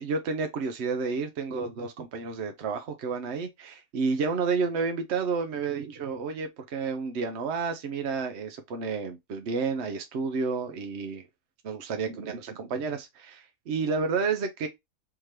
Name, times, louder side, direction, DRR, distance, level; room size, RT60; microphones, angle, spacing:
voice 1, 0.0-11.3 11.6-14.7, right 5 dB, 60° right, 0.9 m, -30 dB
3.6 x 2.9 x 3.1 m
omnidirectional pair, 1.5 m